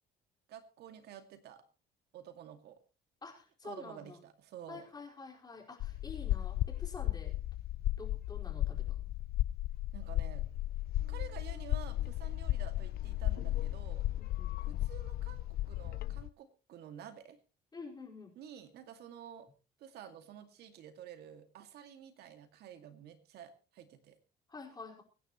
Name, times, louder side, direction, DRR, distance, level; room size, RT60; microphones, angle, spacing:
voice 1, 0.5-1.6 2.1-2.8 3.6-4.9 9.9-10.4 11.1-14.1 14.8-17.4 18.4-19.5 19.8-24.2, right 9 dB, 75° right, 7 dB, 2.3 m, -50 dB
voice 2, 3.2-4.2 4.7-7.4 7.9-9.0 14.2-14.6 17.7-18.3 24.5-25.0, left 4 dB, 25° left, -1 dB, 4.8 m, -48 dB
sound 1, 5.8-16.3, left 15 dB, 65° left, 0.5 m, -35 dB
24.0 x 10.0 x 3.1 m, 0.34 s
cardioid pair, 110°, 17 cm